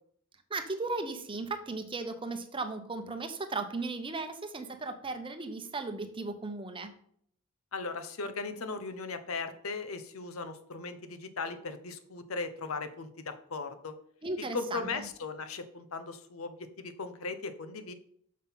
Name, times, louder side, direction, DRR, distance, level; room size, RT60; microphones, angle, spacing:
voice 1, 0.5-6.9 14.2-15.0, right 3 dB, 25° right, 8 dB, 0.8 m, -36 dB
voice 2, 7.7-13.9 14.4-17.9, left 4 dB, 85° left, 9 dB, 0.9 m, -38 dB
6.4 x 5.8 x 5.7 m, 0.64 s
head